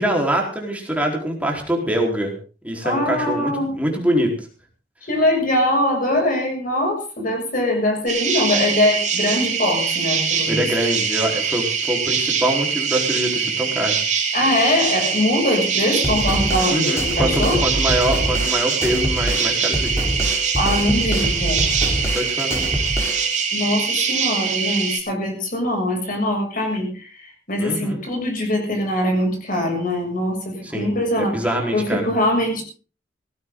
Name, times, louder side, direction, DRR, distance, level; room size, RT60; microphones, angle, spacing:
voice 1, 0.0-2.3 2.6-4.3 10.4-14.0 16.7-19.9 22.1-22.7 27.6-28.0 30.6-30.9 31.2-32.1, right 1 dB, 10° right, 0 dB, 4.2 m, -24 dB
voice 2, 2.8-3.8 5.0-10.6 14.3-17.6 20.6-21.6 23.5-31.3 31.7-32.6, left 1 dB, 50° left, 2 dB, 7.0 m, -22 dB
sound 1, 8.1-25.0, right 6 dB, 40° right, 4.0 m, -23 dB
sound 2, 16.0-23.4, equal, 15° left, 4.3 m, -25 dB
17.5 x 16.0 x 3.9 m, 0.37 s
head